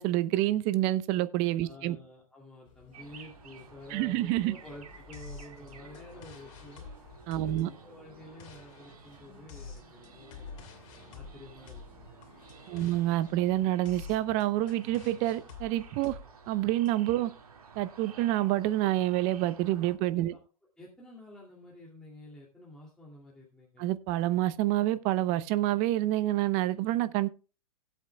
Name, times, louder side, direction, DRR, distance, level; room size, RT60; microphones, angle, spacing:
voice 1, 0.0-2.0 3.9-4.5 7.3-7.7 12.7-16.2 16.5-17.3 17.8-20.3 23.8-27.3, right 15 dB, 40° right, 0.8 m, -28 dB
voice 2, 1.6-6.9 7.4-10.5 11.0-12.2 12.7-13.0 17.2-17.3 20.1-20.4 20.8-23.9, left 1 dB, 5° left, 2.5 m, -50 dB
sound 1, 2.6-13.6, left 4 dB, 30° left, 4.9 m, -58 dB
sound 2, 2.9-20.0, right 6 dB, 85° right, 2.2 m, -53 dB
sound 3, 5.1-16.9, left 5 dB, 55° left, 2.9 m, -49 dB
17.5 x 8.1 x 2.2 m
hypercardioid pair, 135°, 19 cm